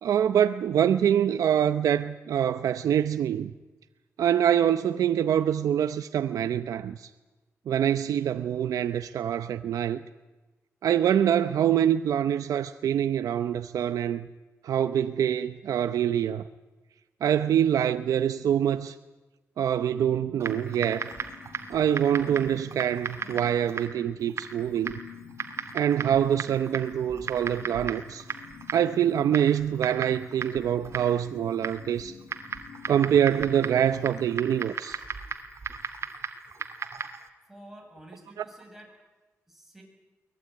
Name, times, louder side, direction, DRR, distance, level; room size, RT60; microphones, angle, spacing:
voice 1, 0.0-3.5 4.2-7.1 7.7-10.0 10.8-14.3 14.6-16.4 17.2-18.9 19.6-21.1 21.7-24.9 25.7-28.2 28.7-32.2 32.9-35.0 38.4-38.5, right 9 dB, 90° right, 0.7 m, -25 dB
sound 1, 19.9-34.2, left 7 dB, 90° left, 2.1 m, -48 dB
Typing, 20.4-37.3, right 5 dB, 55° right, 2.7 m, -37 dB
voice 2, 37.5-39.0 39.5-39.8, right 1 dB, 5° right, 8.0 m, -49 dB
23.0 x 19.5 x 9.6 m
cardioid pair, 85°, 6 cm